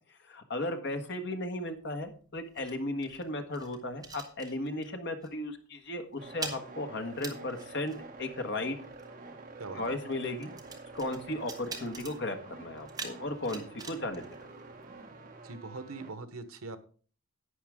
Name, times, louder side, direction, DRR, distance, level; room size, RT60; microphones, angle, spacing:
voice 1, 0.3-8.8 9.7-10.5 10.9-14.2, left 1 dB, 55° left, 6 dB, 1.4 m, -35 dB
sound 1, 1.6-5.0 5.2-5.5 5.8-15.2, right 4 dB, 15° right, 1.3 m, -46 dB
sound 2, 6.2-16.1, right 3 dB, 40° right, 1.6 m, -48 dB
voice 2, 9.6-10.0 13.5-13.6 15.4-16.8, right 3 dB, 85° right, 11 dB, 1.1 m, -42 dB
11.5 x 8.9 x 3.6 m, 0.41 s
head